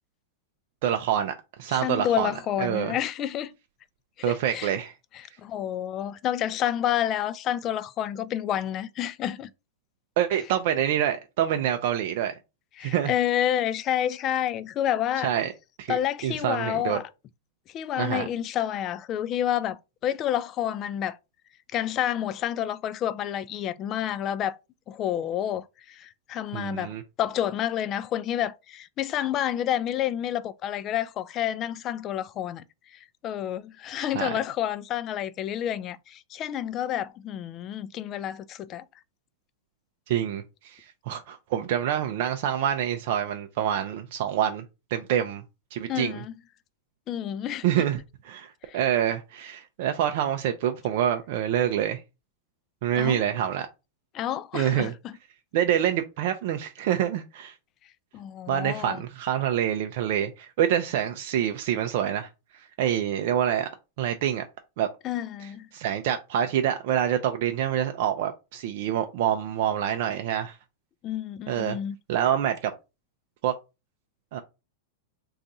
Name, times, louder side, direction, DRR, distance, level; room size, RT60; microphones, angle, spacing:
voice 1, 0.8-2.3 2.6-3.0 4.2-4.9 10.2-12.3 12.8-13.1 15.2-15.5 15.8-17.0 18.0-18.3 26.5-27.0 34.1-34.4 40.1-44.6 44.9-45.4 45.7-46.2 47.6-52.0 52.8-53.7 54.5-54.9 55.5-57.6 58.5-63.7 64.0-64.4 64.8-64.9 65.4-70.6 71.5-71.8 72.1-72.7 73.4-73.5 74.3-74.4, right 10 dB, 60° right, 0.4 m, -26 dB
voice 2, 1.7-3.5 4.2-4.7 5.4-9.5 12.8-15.3 15.9-17.1 17.7-21.2 21.7-24.6 24.9-26.9 27.2-32.6 32.9-38.9 45.9-46.3 47.1-47.9 48.7-48.8 53.0-53.2 54.1-55.1 58.1-59.0 65.0-65.7 71.0-72.0, left 11 dB, 35° left, 0.3 m, -29 dB
2.5 x 2.4 x 4.0 m
hypercardioid pair, 115°, 0 cm